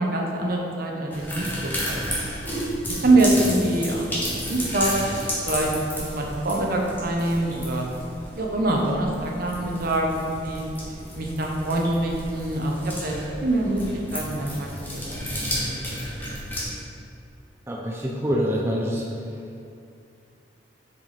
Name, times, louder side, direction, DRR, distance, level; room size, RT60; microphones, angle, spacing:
voice 1, 0.0-2.3 3.0-4.9 5.5-7.8 8.4-10.6 11.2-13.1 13.4-13.8 14.1-15.9, right 2 dB, 55° right, 0 dB, 0.9 m, -25 dB
sound 1, 1.1-16.6, equal, 10° left, 1.4 m, -32 dB
voice 2, 17.7-19.0, equal, 15° right, -2 dB, 0.5 m, -25 dB
6.8 x 4.9 x 4.2 m, 2.5 s
head